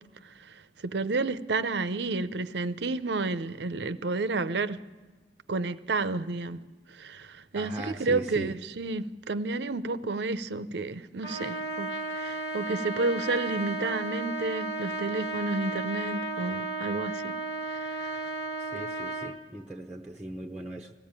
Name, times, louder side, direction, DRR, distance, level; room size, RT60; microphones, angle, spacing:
voice 1, 0.4-4.8 5.5-6.6 6.9-17.3 17.7-18.2, right 3 dB, 70° right, 0.7 m, -31 dB
voice 2, 7.5-8.5 18.6-20.9, right 1 dB, 5° right, 0.8 m, -39 dB
Trumpet, 11.2-19.4, right 2 dB, 85° left, 1.6 m, -34 dB
19.5 x 15.5 x 8.9 m
head